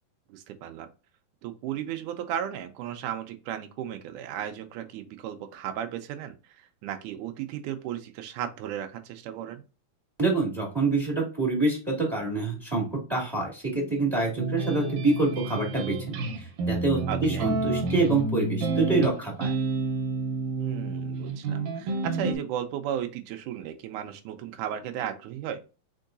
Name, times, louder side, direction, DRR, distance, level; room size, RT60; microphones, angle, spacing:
voice 1, 0.3-0.9 1.4-9.6 17.1-17.5 20.6-25.6, right 10 dB, 90° right, 6 dB, 1.8 m, -35 dB
voice 2, 10.2-16.2 16.7-19.5, right 3 dB, 10° right, -2 dB, 1.4 m, -26 dB
sound 1, 14.4-22.3, right 3 dB, 70° right, 1.9 m, -29 dB
4.6 x 4.5 x 2.6 m, 0.31 s
omnidirectional pair, 4.2 m